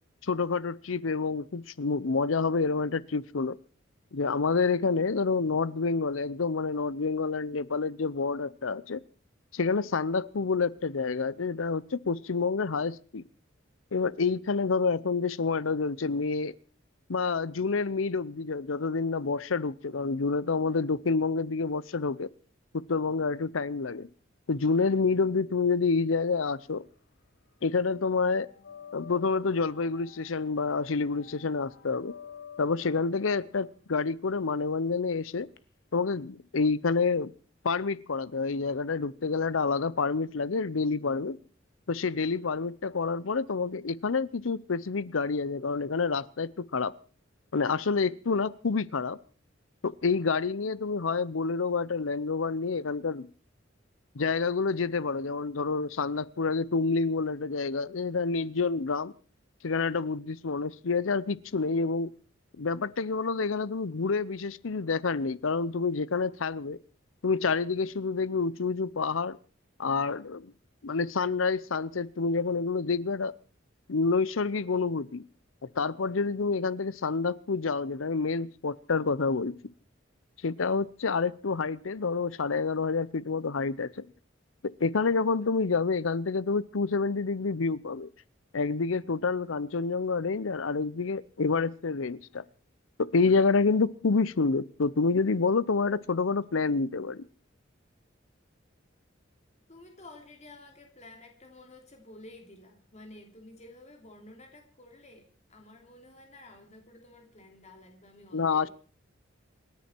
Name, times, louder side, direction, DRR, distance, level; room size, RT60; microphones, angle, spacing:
voice 1, 0.2-3.6 4.1-9.0 9.5-13.2 13.9-16.5 17.1-22.3 22.7-24.1 24.5-26.8 27.6-28.5 28.9-32.1 32.6-35.5 35.9-37.3 37.6-41.4 41.9-47.0 47.5-49.2 49.8-53.3 54.1-59.1 59.6-62.1 62.6-66.8 67.2-69.4 69.8-70.5 70.8-73.3 73.9-75.2 75.6-79.6 80.4-84.0 84.6-88.1 88.5-92.4 93.0-97.3 108.3-108.7, left 4 dB, 85° left, 0.7 m, -28 dB
sound 1, 26.3-27.4 27.7-35.6, left 7 dB, 55° left, 1.2 m, -51 dB
voice 2, 99.7-105.2 105.5-108.7, left 2 dB, 35° left, 3.1 m, -51 dB
27.5 x 10.5 x 4.5 m
head